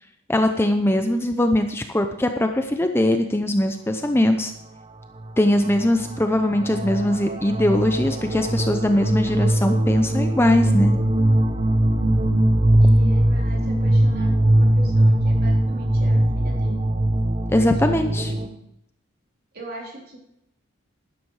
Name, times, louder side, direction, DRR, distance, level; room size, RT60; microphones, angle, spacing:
voice 1, 0.3-4.5 5.4-10.9 17.5-18.3, left 1 dB, 10° left, 6 dB, 0.6 m, -21 dB
voice 2, 1.1-1.4 12.8-16.8 17.5-18.6 19.5-20.2, right 1 dB, 50° right, -2 dB, 3.9 m, -40 dB
sound 1, 5.2-5.3 5.6-18.5, right 1 dB, 30° right, 0.9 m, -20 dB
12.0 x 11.5 x 4.8 m, 0.78 s
head